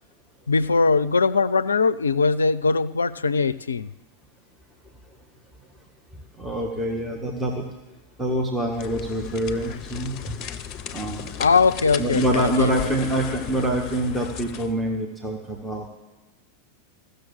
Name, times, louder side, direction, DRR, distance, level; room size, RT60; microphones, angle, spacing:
voice 1, 0.5-3.9 11.4-12.9, left 4 dB, 75° left, 16 dB, 0.4 m, -21 dB
voice 2, 6.4-7.7 8.2-10.4 10.9-11.3 12.0-15.8, right 1 dB, 10° right, 0 dB, 1.5 m, -25 dB
sound 1, 8.7-14.8, left 8 dB, 35° left, 0.7 m, -36 dB
15.0 x 6.7 x 7.4 m, 1.2 s
figure-of-eight pair, 90°, 0 cm